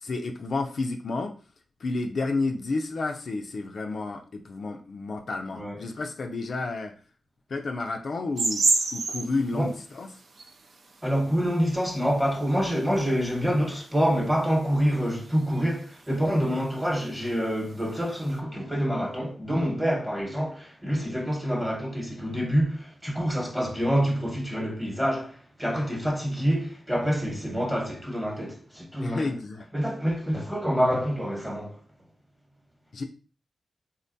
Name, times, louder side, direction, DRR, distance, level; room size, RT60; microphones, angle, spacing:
voice 1, 0.0-1.3 1.8-6.9 7.5-8.6 8.9-10.1 29.0-29.7 32.9-33.0, left 3 dB, 55° left, 0.3 m, -31 dB
sound 1, 8.4-13.7 14.0-18.3, right 3 dB, 60° right, 0.4 m, -30 dB
voice 2, 11.0-29.4 29.7-31.8, equal, 10° right, 1.0 m, -27 dB
3.7 x 2.1 x 2.6 m
cardioid pair, 90°, 0 cm